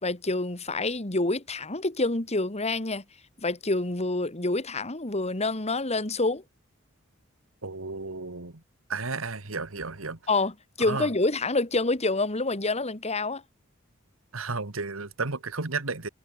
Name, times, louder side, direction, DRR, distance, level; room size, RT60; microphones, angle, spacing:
voice 1, 0.0-3.0 3.4-6.4 10.3-13.4, left 2 dB, 30° left, 2.3 m, -27 dB
voice 2, 7.6-8.6 8.9-10.2 10.8-11.1 14.3-16.1, right 4 dB, 75° right, 2.0 m, -33 dB
head